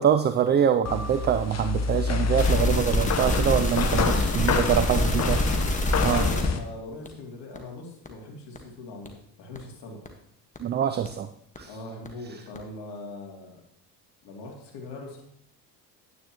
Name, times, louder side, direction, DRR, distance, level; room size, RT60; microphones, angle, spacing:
voice 1, 0.0-5.0 5.3-5.4 6.0-6.2 10.6-11.3 11.6-11.7, right 9 dB, 25° right, 10 dB, 0.4 m, -24 dB
sound 1, 0.9-6.6, left 5 dB, 30° left, 1.0 m, -28 dB
sound 2, 2.4-6.6 7.1-7.2 7.6-7.7 8.1-8.2 8.6-8.7 9.1-9.2 9.6-9.7 10.1-10.2 10.6-10.7 11.1-11.2 11.6-11.7 12.1-12.2 12.6-12.7, left 1 dB, 15° left, 1.5 m, -25 dB
voice 2, 4.7-5.2 5.9-9.1 9.4-10.0 11.7-13.6 14.2-15.2, left 2 dB, 55° left, -1 dB, 2.9 m, -40 dB
9.6 x 9.3 x 3.0 m, 0.73 s
hypercardioid pair, 60°, 50 cm